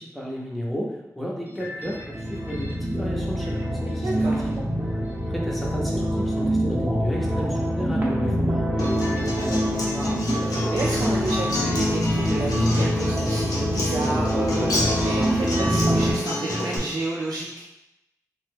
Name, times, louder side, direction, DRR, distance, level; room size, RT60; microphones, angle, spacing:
voice 1, 0.0-4.6 5.3-9.0, equal, ahead, -3 dB, 0.7 m, -33 dB
sound 1, 1.5-16.1, equal, 30° right, 0.8 m, -26 dB
voice 2, 4.0-4.4 9.9-17.5, right 2 dB, 70° right, -6 dB, 0.4 m, -31 dB
Acoustic guitar, 8.8-16.8, left 1 dB, 90° left, 0.6 m, -27 dB
2.9 x 2.1 x 3.3 m, 0.91 s
wide cardioid pair, 85°, 6 cm